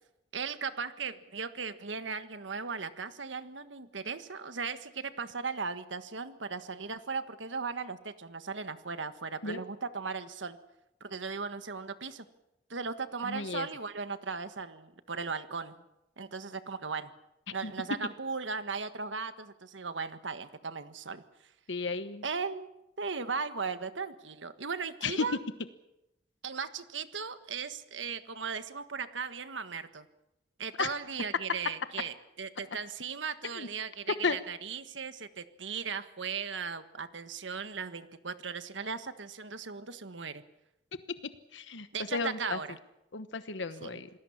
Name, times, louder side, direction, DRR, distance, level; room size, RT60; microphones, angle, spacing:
voice 1, 0.3-10.6 11.0-12.3 12.7-15.8 16.2-17.1 17.5-21.2 22.2-22.7 23.0-25.4 26.4-30.1 30.6-40.4 41.9-42.8 43.8-44.0, right 5 dB, 85° right, 11 dB, 1.5 m, -37 dB
voice 2, 13.2-13.7 17.6-17.7 21.7-22.2 25.0-25.2 30.8-30.9 33.6-33.7 34.2-34.4 41.5-42.6 43.1-44.1, left 4 dB, 80° left, 11 dB, 1.1 m, -33 dB
27.0 x 19.5 x 7.2 m, 0.90 s
head